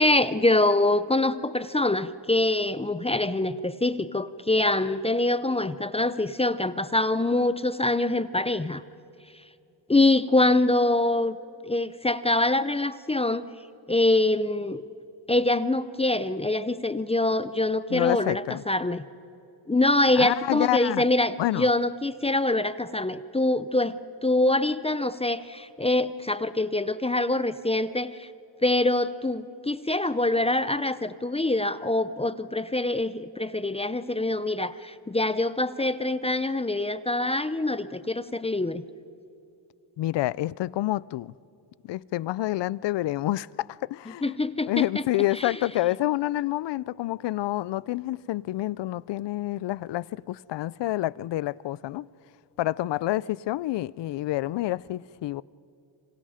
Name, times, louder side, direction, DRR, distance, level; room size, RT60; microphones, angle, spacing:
voice 1, 0.0-8.8 9.9-11.4 11.6-13.5 13.9-14.8 15.3-19.0 19.7-28.3 28.6-38.8 44.2-45.0 45.4-45.5, left 2 dB, 15° left, 0.6 m, -24 dB
voice 2, 17.9-18.6 20.2-21.0 21.4-21.7 40.0-41.3 41.8-44.4 44.7-52.1 52.6-55.4, left 16 dB, 70° left, 0.6 m, -28 dB
28.0 x 26.0 x 5.0 m
cardioid pair, 100°, 44 cm